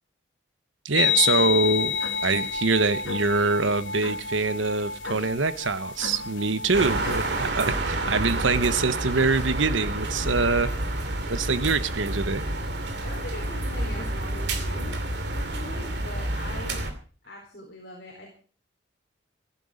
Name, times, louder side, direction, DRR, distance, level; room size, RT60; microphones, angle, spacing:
voice 1, 0.8-2.0 2.2-10.7 11.3-12.5, right 3 dB, 90° right, 1.1 m, -24 dB
sound 1, 0.9-7.5, left 7 dB, 85° left, 1.4 m, -29 dB
sound 2, 6.7-16.9, right 1 dB, 60° right, 2.6 m, -29 dB
voice 2, 13.0-15.0 15.3-16.8 17.2-18.3, left 1 dB, 55° left, 4.4 m, -41 dB
15.5 x 14.0 x 5.1 m
head